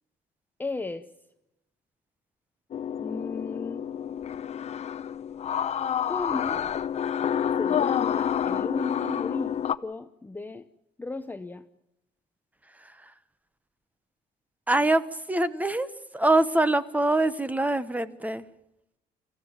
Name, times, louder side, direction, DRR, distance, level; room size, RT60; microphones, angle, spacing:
voice 1, 0.6-1.1 3.0-3.9 6.1-6.7 7.6-10.7 11.0-11.6, left 3 dB, 10° left, 9 dB, 0.7 m, -35 dB
sound 1, 2.7-9.8, left 9 dB, 40° left, 0.7 m, -28 dB
voice 2, 14.7-18.5, right 2 dB, 10° right, 15 dB, 1.1 m, -24 dB
25.0 x 15.0 x 9.0 m, 0.88 s
cardioid pair, 110°, 17 cm